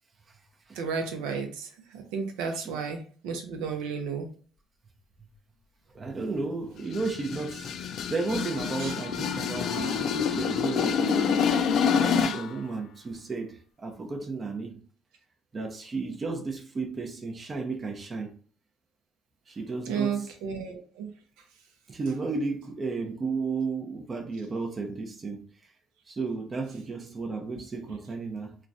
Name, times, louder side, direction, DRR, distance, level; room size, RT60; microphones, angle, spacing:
voice 1, 0.7-4.3 8.8-8.9 19.9-21.1, right 6 dB, 85° right, 0.7 m, -33 dB
voice 2, 5.9-11.5 11.9-14.8 15.5-18.3 19.5-20.3 21.9-25.5 26.1-28.6, right 4 dB, 35° right, 0.6 m, -33 dB
sound 1, 6.8-12.6, left 6 dB, 65° left, 0.4 m, -27 dB
3.0 x 2.3 x 2.6 m
supercardioid pair, 75°, 0 cm